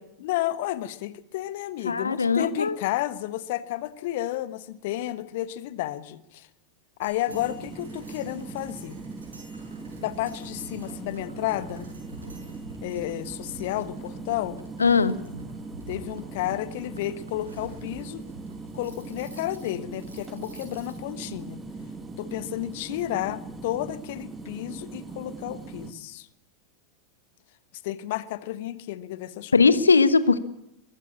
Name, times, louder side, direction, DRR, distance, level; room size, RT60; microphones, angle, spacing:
voice 1, 0.2-6.5 7.0-9.0 10.0-11.9 12.8-14.6 15.9-18.3 18.7-21.6 22.2-26.3 27.8-29.7, left 14 dB, 50° left, 15 dB, 1.1 m, -32 dB
voice 2, 1.8-2.7 14.8-15.1 29.5-30.4, left 4 dB, 75° left, 15 dB, 1.2 m, -19 dB
sound 1, 7.0-21.3, right 2 dB, 75° right, 6.1 m, -47 dB
sound 2, 7.3-25.9, right 3 dB, 15° right, 2.0 m, -40 dB
23.0 x 15.0 x 8.6 m, 0.82 s
figure-of-eight pair, 90°, 0 cm